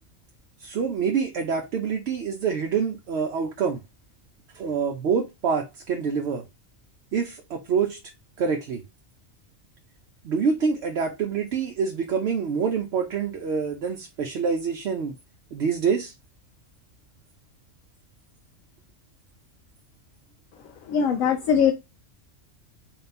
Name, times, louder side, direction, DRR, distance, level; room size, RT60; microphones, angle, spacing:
voice 1, 0.6-3.8 4.5-6.4 7.1-8.0 8.4-8.8 10.2-15.1 15.5-16.1, right 6 dB, 60° right, 0.8 m, -26 dB
voice 2, 20.9-21.7, left 7 dB, 80° left, 1.0 m, -21 dB
4.2 x 2.3 x 4.0 m
omnidirectional pair, 1.4 m